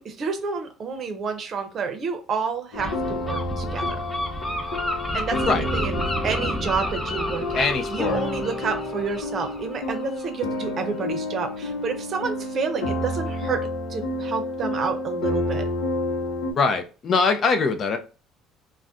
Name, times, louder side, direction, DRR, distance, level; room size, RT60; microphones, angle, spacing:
voice 1, 0.0-3.8 5.1-13.6 13.9-15.7, right 5 dB, 50° right, 7 dB, 0.6 m, -29 dB
sound 1, 2.7-16.5, left 1 dB, 90° left, 0.6 m, -30 dB
Gull seagull, 2.8-10.3, left 1 dB, 10° left, 0.7 m, -31 dB
voice 2, 7.5-8.2 16.5-18.0, left 4 dB, 45° left, 7 dB, 0.5 m, -22 dB
2.5 x 2.1 x 3.5 m, 0.34 s
supercardioid pair, 85°, 0 cm